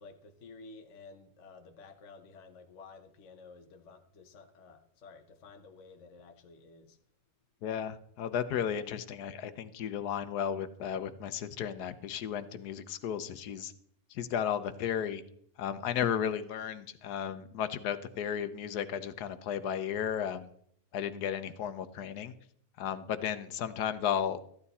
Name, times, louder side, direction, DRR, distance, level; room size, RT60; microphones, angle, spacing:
voice 1, 0.0-7.0, left 4 dB, 55° left, 5 dB, 1.3 m, -53 dB
voice 2, 7.6-13.7 14.1-15.2 15.6-20.5 20.9-22.3 22.8-24.4, left 8 dB, 85° left, 12 dB, 1.4 m, -34 dB
14.0 x 11.5 x 4.2 m, 0.67 s
omnidirectional pair, 1.6 m